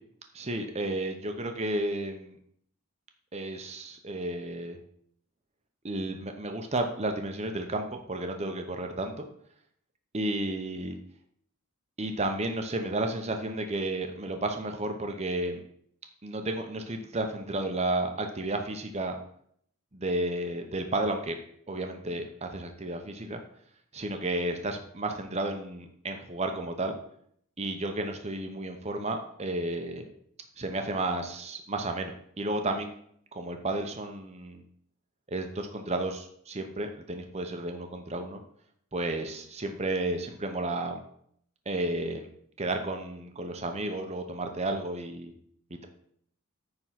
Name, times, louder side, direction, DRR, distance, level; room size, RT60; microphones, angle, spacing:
voice 1, 0.3-2.4 3.3-4.8 5.8-9.3 10.1-11.0 12.0-15.6 16.2-19.2 19.9-21.4 21.7-23.4 23.9-26.9 27.6-30.1 30.6-32.9 33.3-34.6 35.3-38.4 38.9-41.0 41.7-42.3 42.6-45.3 45.7-45.9, right 2 dB, 30° right, 5 dB, 0.8 m, -32 dB
9.3 x 3.8 x 5.8 m, 0.65 s
head